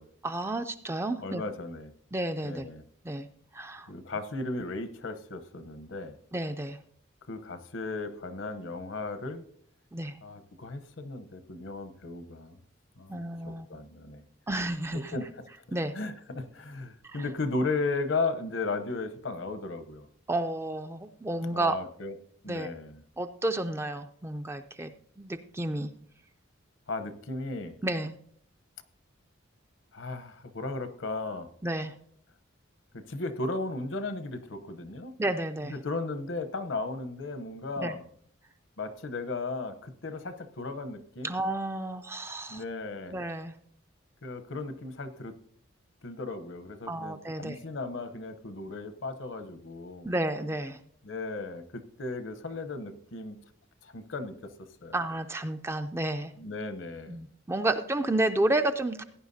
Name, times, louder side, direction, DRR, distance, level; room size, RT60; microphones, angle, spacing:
voice 1, 0.2-1.4 2.1-2.7 3.0-3.3 3.5-3.9 6.3-6.8 9.9-10.2 13.1-13.7 14.5-15.1 15.7-15.9 17.0-17.2 20.3-21.8 22.5-22.7 23.2-25.9 27.8-28.1 31.6-31.9 35.2-35.7 37.8-37.9 41.2-42.6 43.1-43.5 46.9-47.6 50.0-50.8 54.9-56.3 57.1-59.0, right 1 dB, 15° right, 8 dB, 0.3 m, -31 dB
voice 2, 1.2-1.9 2.4-2.8 3.9-6.2 7.3-9.4 10.2-12.6 13.0-14.2 15.1-15.3 15.7-20.1 21.5-22.2 22.4-23.0 26.9-27.7 29.9-31.5 32.9-35.2 35.7-38.0 38.8-41.3 42.5-43.1 44.2-45.3 46.0-50.1 51.0-53.4 53.8-55.0 56.4-57.2, left 3 dB, 70° left, 11 dB, 0.8 m, -35 dB
17.0 x 9.9 x 2.7 m, 0.64 s
head